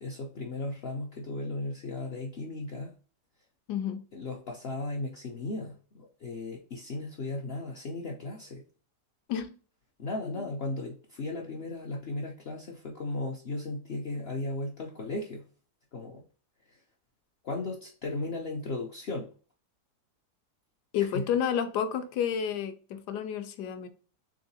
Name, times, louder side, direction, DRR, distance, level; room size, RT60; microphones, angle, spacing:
voice 1, 0.0-2.9 4.1-8.6 10.0-15.5 15.9-16.2 16.7-16.8 17.4-19.3 21.0-21.3, left 2 dB, 60° left, -1 dB, 0.6 m, -36 dB
voice 2, 3.7-4.0 9.3-9.6 20.9-23.9, left 8 dB, 80° left, 9 dB, 1.2 m, -30 dB
3.8 x 3.5 x 2.6 m, 0.39 s
omnidirectional pair, 1.8 m